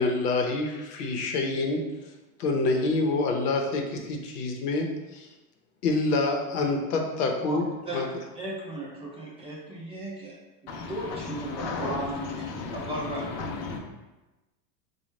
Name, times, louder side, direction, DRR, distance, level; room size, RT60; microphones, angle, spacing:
voice 1, 0.0-1.8 2.4-5.3 5.8-7.6 7.9-8.1, left 3 dB, 80° left, 0.8 m, -26 dB
voice 2, 7.5-10.4 10.6-13.6, right 1 dB, 15° right, 0.5 m, -36 dB
voice 3, 10.7-13.8, left 4 dB, 35° left, 0.6 m, -35 dB
3.9 x 2.3 x 3.2 m
supercardioid pair, 135°, 45 cm